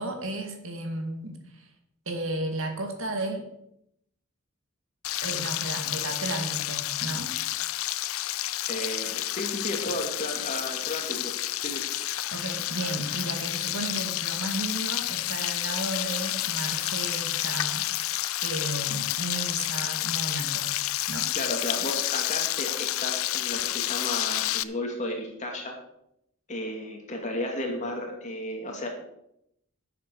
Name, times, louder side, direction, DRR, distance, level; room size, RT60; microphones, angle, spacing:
voice 1, 0.0-1.7 2.1-3.5 5.2-7.3 12.3-17.8 18.4-20.7 21.1-21.3, right 2 dB, 70° right, 4 dB, 2.2 m, -34 dB
Frying (food), 5.0-24.6, left 15 dB, 80° left, 0.5 m, -30 dB
voice 2, 8.7-11.3 11.6-11.8 21.3-25.7 26.5-28.9, left 1 dB, 35° left, 1 dB, 2.4 m, -33 dB
11.0 x 7.5 x 6.4 m, 0.77 s
head